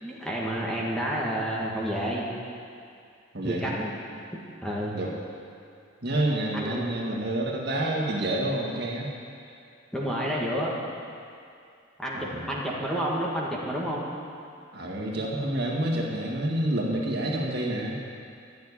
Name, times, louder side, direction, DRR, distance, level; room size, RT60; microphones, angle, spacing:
voice 1, 0.0-2.2 3.4-3.9 4.3-5.0 6.5-6.9 9.9-10.7 12.0-14.1, equal, 5° left, -5 dB, 1.6 m, -30 dB
voice 2, 3.3-3.8 4.9-5.1 6.0-9.1 12.1-12.5 14.7-18.0, right 1 dB, 55° right, -2 dB, 1.9 m, -28 dB
11.5 x 7.2 x 9.9 m, 2.4 s
head